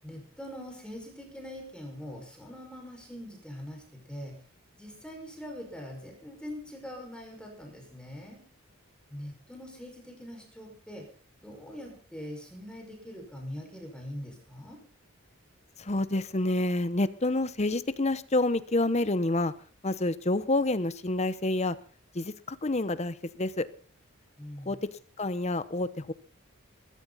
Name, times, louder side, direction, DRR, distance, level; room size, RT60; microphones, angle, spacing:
voice 1, 0.0-4.3 4.8-8.4 9.1-11.1 11.4-14.8 24.4-24.7, equal, 5° left, 1 dB, 5.6 m, -43 dB
voice 2, 15.8-19.5 19.8-21.8 22.1-23.7 24.7-24.9 25.2-26.1, left 2 dB, 30° left, 14 dB, 0.9 m, -28 dB
22.0 x 14.0 x 4.1 m, 0.39 s
head